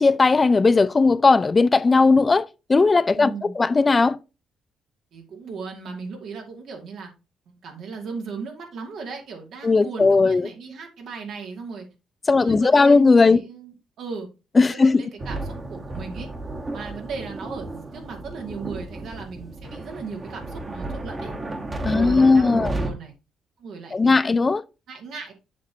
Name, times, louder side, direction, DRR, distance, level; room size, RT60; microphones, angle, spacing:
voice 1, 0.0-4.2 9.6-10.5 12.3-13.4 14.6-15.0 21.8-22.7 23.9-24.6, left 4 dB, 30° left, 0.4 m, -17 dB
voice 2, 3.2-3.6 5.1-7.1 7.5-11.9 12.3-14.3 14.7-16.3 16.7-21.3 21.9-23.1 23.6-24.4 24.9-25.3, right 5 dB, 70° right, 2.1 m, -37 dB
sound 1, 15.2-22.9, right 2 dB, 25° right, 1.4 m, -33 dB
7.4 x 6.0 x 2.8 m
cardioid pair, 90°, 0 cm